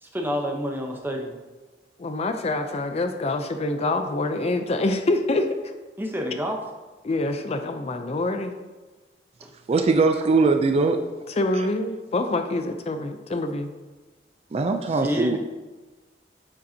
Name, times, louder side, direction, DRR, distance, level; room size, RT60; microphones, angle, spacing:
voice 1, 0.0-1.4 6.0-6.6 9.4-9.5 14.9-15.4, equal, 10° right, 2 dB, 0.7 m, -29 dB
voice 2, 2.0-5.5 7.0-8.5 11.3-13.7, left 2 dB, 35° left, 7 dB, 0.4 m, -26 dB
voice 3, 9.7-11.0 11.5-11.6 14.5-15.4, right 3 dB, 35° right, 6 dB, 0.4 m, -21 dB
8.4 x 5.2 x 2.7 m, 1.2 s
head